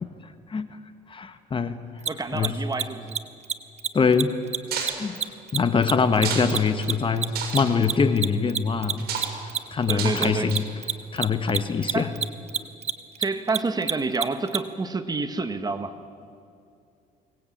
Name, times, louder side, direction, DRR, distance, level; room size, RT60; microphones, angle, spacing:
voice 1, 1.1-1.8 2.3-2.5 3.9-4.3 5.0-5.2 5.5-9.0 9.7-10.7 11.1-12.1 12.5-12.6, left 5 dB, 30° left, 10 dB, 1.2 m, -23 dB
Mechanisms, 2.0-2.1 2.4-2.5 2.7-2.8 3.1-3.2 3.4-3.5 3.8-4.2 4.5-7.2 7.5-14.6, right 8 dB, 40° right, 1.1 m, -26 dB
voice 2, 2.1-3.2 9.9-10.5 11.9-12.1 13.2-16.0, right 3 dB, 25° right, 9 dB, 1.5 m, -28 dB
sound 1, 4.7-5.0 6.1-6.5 6.8-6.9 7.3-7.7 9.0-9.3 10.0-10.2 10.5-10.8, right 7 dB, 70° right, 7.0 m, -30 dB
24.0 x 19.0 x 8.7 m, 2.5 s
cardioid pair, 110°, 17 cm